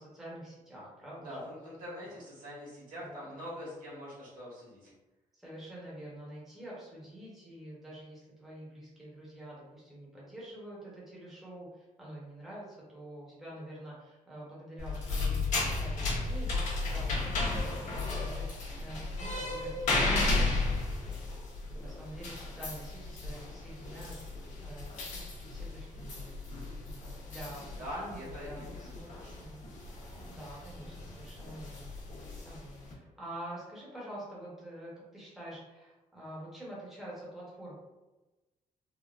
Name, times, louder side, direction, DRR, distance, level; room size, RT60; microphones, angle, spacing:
voice 1, 0.0-1.4 2.0-2.2 3.0-3.3 5.3-21.2 21.7-24.2 24.6-26.3 26.8-29.1 29.4-29.7 30.3-31.9 32.4-37.7, right 1 dB, ahead, -7 dB, 0.9 m, -47 dB
voice 2, 1.2-4.9 27.8-29.4, equal, 75° right, -6 dB, 1.4 m, -43 dB
sound 1, 14.8-32.9, left 3 dB, 55° left, 0.9 m, -34 dB
3.6 x 2.0 x 2.4 m, 1.1 s
cardioid pair, 125°, 14 cm